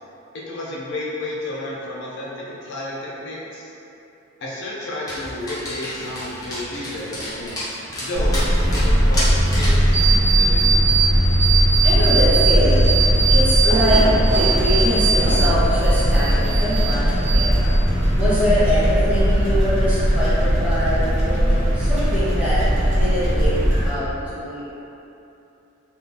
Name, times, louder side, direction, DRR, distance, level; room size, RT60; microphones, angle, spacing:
voice 1, 0.3-3.7 4.4-7.6 8.0-9.3 9.5-10.8, left 1 dB, 60° left, -6 dB, 0.5 m, -31 dB
Dog, 5.1-9.9, left 1 dB, 20° left, 0.6 m, -30 dB
sound 1, 8.1-23.9, equal, 35° right, 0.6 m, -18 dB
sound 2, 9.9-11.1 11.4-12.5 12.9-15.5 15.8-16.9 17.3-17.9, right 5 dB, 85° right, 1.1 m, -21 dB
voice 2, 11.8-12.8 13.3-17.6 18.1-22.6 22.9-23.6 23.8-24.6, equal, 5° right, -13 dB, 0.9 m, -23 dB
3.4 x 2.5 x 2.7 m, 2.9 s
head